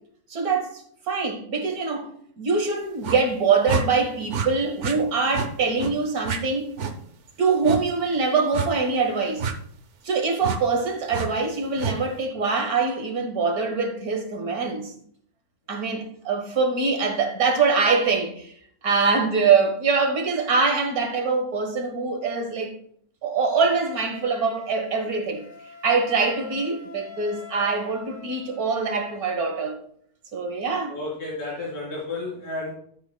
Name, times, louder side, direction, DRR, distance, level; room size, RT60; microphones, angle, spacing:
voice 1, 0.3-2.1 2.4-6.7 7.4-9.5 10.0-14.9 15.7-18.5 18.8-22.8 23.2-25.4 25.8-29.8 30.3-31.0, right 4 dB, 75° right, 1.8 m, -24 dB
sound 1, 3.0-3.2 3.7-3.9 4.3-4.5 4.8-5.0 5.3-5.5 5.8-5.9 6.2-6.4 6.8-6.9 7.6-7.8 8.5-8.7 9.4-9.5 10.4-10.6 11.1-11.3 11.8-12.0, right 5 dB, 55° right, 1.0 m, -27 dB
Wind instrument woodwind instrument, 23.8-29.2, left 4 dB, 60° left, 4.1 m, -44 dB
voice 2, 30.9-32.7, left 2 dB, 85° left, 4.3 m, -32 dB
12.5 x 7.8 x 2.2 m
omnidirectional pair, 1.6 m